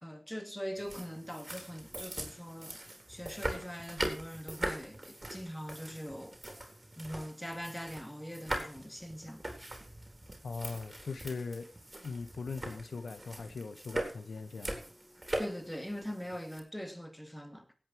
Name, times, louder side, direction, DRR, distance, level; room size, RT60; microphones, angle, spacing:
voice 1, 0.0-2.8 3.1-6.4 7.0-9.5 15.4-17.7, equal, 5° left, 2.5 m, -42 dB
sound 1, 0.8-16.6, right 1 dB, 25° right, 3.9 m, -41 dB
voice 2, 10.4-11.7 12.0-14.8, left 4 dB, 90° left, 1.4 m, -40 dB
16.5 x 8.8 x 4.6 m
wide cardioid pair, 65°, 0 cm